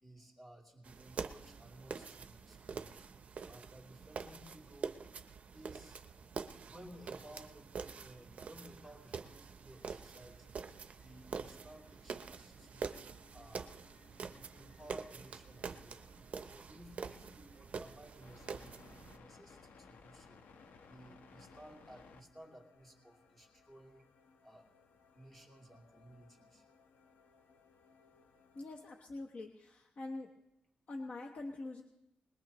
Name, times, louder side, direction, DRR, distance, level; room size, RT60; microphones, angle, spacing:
voice 1, 0.0-3.1 3.5-5.0 5.5-6.0 6.7-10.6 11.0-13.0 13.3-13.9 14.2-16.1 16.4-20.4 20.8-24.1 24.4-24.7 25.1-26.6 28.2-28.3, right 1 dB, 5° left, -1 dB, 2.7 m, -57 dB
sound 1, 0.8-19.2, right 5 dB, 45° right, 0.7 m, -46 dB
sound 2, 9.7-29.0, left 5 dB, 70° left, 1.2 m, -63 dB
voice 2, 28.5-30.3 30.9-31.8, left 2 dB, 45° left, 2 dB, 1.1 m, -44 dB
21.5 x 20.5 x 3.0 m, 0.85 s
wide cardioid pair, 170°, 3 cm